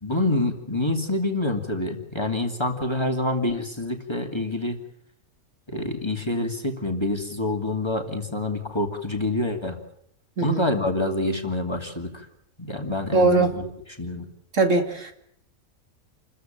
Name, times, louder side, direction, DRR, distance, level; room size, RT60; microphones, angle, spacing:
voice 1, 0.0-4.8 5.7-9.8 10.4-12.3 12.6-13.7 14.0-14.3, left 2 dB, 20° left, 4 dB, 2.6 m, -27 dB
voice 2, 13.1-13.6 14.5-15.1, right 3 dB, 60° right, 6 dB, 2.6 m, -20 dB
28.5 x 15.0 x 9.1 m, 0.73 s
omnidirectional pair, 1.5 m